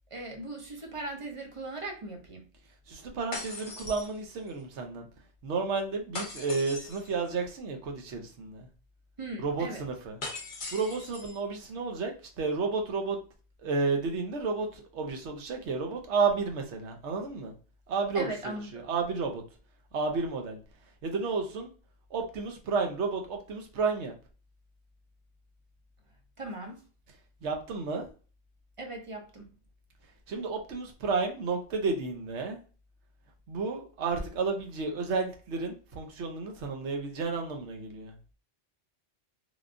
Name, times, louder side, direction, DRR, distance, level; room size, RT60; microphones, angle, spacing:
voice 1, 0.1-2.4 9.2-9.8 18.1-18.9 26.4-26.8 28.8-29.5, right 2 dB, 40° right, 0.5 m, -38 dB
voice 2, 2.9-5.1 5.4-8.7 9.4-10.2 10.7-13.2 13.6-17.5 17.9-19.4 19.9-20.6 21.0-21.7 22.1-24.1 27.4-28.1 30.3-32.6 33.5-38.1, right 4 dB, 80° right, 1.0 m, -31 dB
sound 1, 3.3-4.6 6.1-7.1 10.2-11.4, left 3 dB, 50° left, 0.8 m, -40 dB
3.4 x 2.3 x 2.5 m
omnidirectional pair, 1.2 m